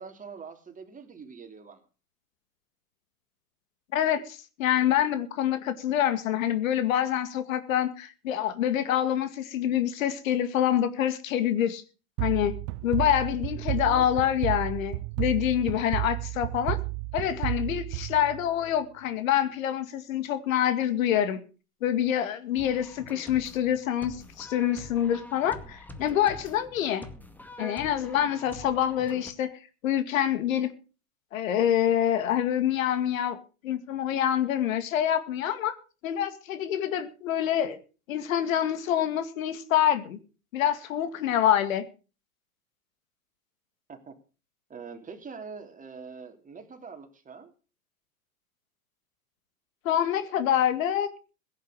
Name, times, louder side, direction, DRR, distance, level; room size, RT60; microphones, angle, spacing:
voice 1, 0.0-1.8 13.8-14.3 43.9-44.1 44.7-47.5, right 5 dB, 20° right, 3.3 m, -44 dB
voice 2, 3.9-11.8 12.2-12.5 12.8-16.8 17.1-21.4 21.8-27.0 27.6-29.5 29.8-30.7 31.3-33.4 33.6-35.7 36.0-37.8 38.1-40.2 40.5-41.8 49.8-51.1, left 10 dB, 65° left, 2.2 m, -26 dB
sound 1, 12.2-18.8, right 21 dB, 40° right, 0.7 m, -32 dB
sound 2, 22.6-29.3, left 1 dB, 5° left, 2.2 m, -45 dB
17.0 x 9.3 x 6.4 m
hypercardioid pair, 100°, 43 cm